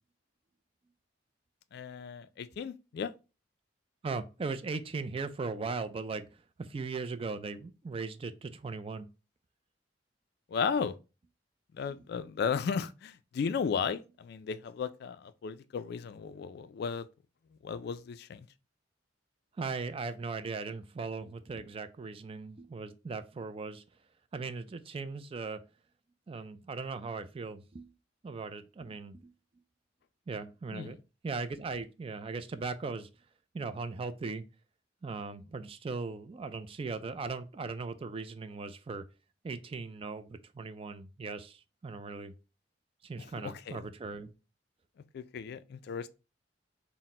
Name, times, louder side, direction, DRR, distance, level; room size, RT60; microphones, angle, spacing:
voice 1, 1.7-3.1 10.5-10.9 11.7-17.1 17.6-18.5 30.7-31.0 43.2-43.9 45.1-46.1, left 6 dB, 60° left, 0.3 m, -35 dB
voice 2, 4.0-6.3 6.6-9.1 19.6-23.8 24.3-25.6 26.3-27.9 28.2-29.3 30.3-31.0 31.2-33.1 33.5-34.4 35.0-39.0 39.4-42.3 43.0-44.3, right 4 dB, 30° right, 0.3 m, -38 dB
4.0 x 2.1 x 4.2 m
head